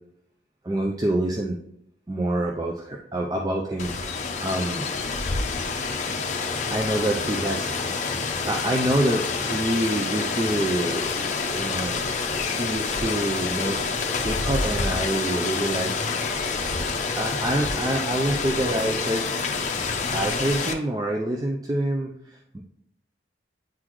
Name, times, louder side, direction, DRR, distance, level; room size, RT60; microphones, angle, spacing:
voice 1, 0.6-1.6 2.1-4.9 6.7-7.7 8.1-8.2 8.4-12.0 12.5-13.8 14.2-15.9 17.2-19.3 20.1-22.6, right 1 dB, 20° right, 1 dB, 0.4 m, -26 dB
Rain, 3.8-20.7, left 4 dB, 40° left, 0.6 m, -27 dB
8.7 x 4.0 x 3.0 m, 0.74 s
head